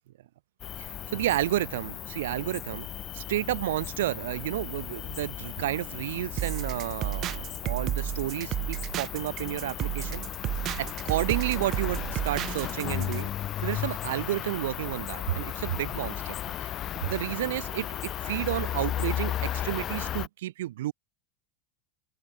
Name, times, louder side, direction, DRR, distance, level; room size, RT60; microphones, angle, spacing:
Cricket, 0.6-20.3, left 11 dB, 25° left, 3.8 m, -35 dB
voice 1, 0.8-2.9 3.1-10.2 10.8-13.3 13.6-16.7 16.9-20.9, right 14 dB, 90° right, 3.2 m, -31 dB
sound 1, 6.4-13.2, right 13 dB, 30° right, 1.5 m, -32 dB
open air
supercardioid pair, 170°, 0 cm